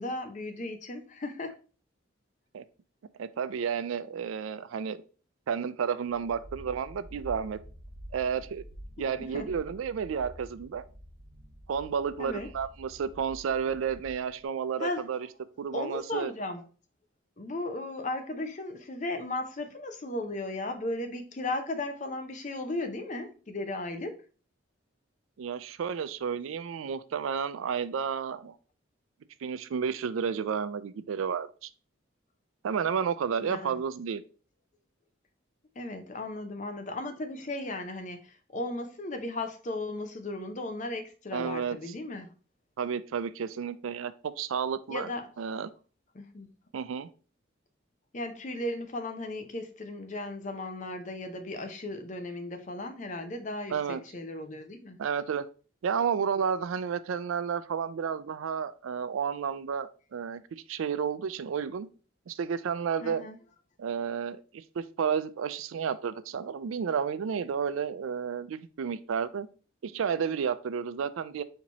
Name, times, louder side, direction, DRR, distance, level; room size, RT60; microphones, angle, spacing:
voice 1, 0.0-1.5 9.3-9.5 12.2-12.5 14.8-15.1 15.7-16.6 17.4-24.2 33.4-33.7 35.8-42.3 44.9-45.3 46.1-46.5 48.1-53.8 54.1-55.0 63.0-63.4, left 2 dB, 40° left, 0.6 m, -36 dB
voice 2, 3.2-5.0 5.5-7.6 8.1-8.6 9.0-10.8 11.7-15.3 15.6-16.3 25.4-28.5 29.4-31.7 32.6-34.2 41.3-41.8 42.8-45.1 45.4-45.7 46.7-47.1 53.7-54.0 55.0-55.5 55.8-61.9 62.3-63.3 63.8-69.5 69.8-71.4, right 7 dB, 90° right, 0.4 m, -31 dB
sound 1, 6.1-14.5, equal, 55° right, 0.8 m, -48 dB
4.4 x 2.9 x 4.0 m
head